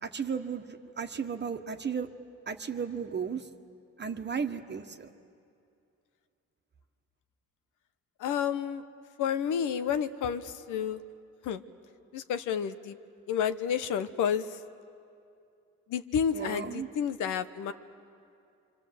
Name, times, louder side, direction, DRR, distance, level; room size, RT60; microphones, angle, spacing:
voice 1, 0.0-2.1 2.5-3.5 4.0-5.1 16.3-16.9, right 6 dB, 35° right, 6 dB, 1.4 m, -34 dB
voice 2, 8.2-8.8 9.2-11.0 11.4-11.6 12.1-13.0 13.3-14.6 15.9-17.7, left 8 dB, 85° left, 10 dB, 1.0 m, -30 dB
27.0 x 25.0 x 7.7 m, 2.5 s
cardioid pair, 90°, 30 cm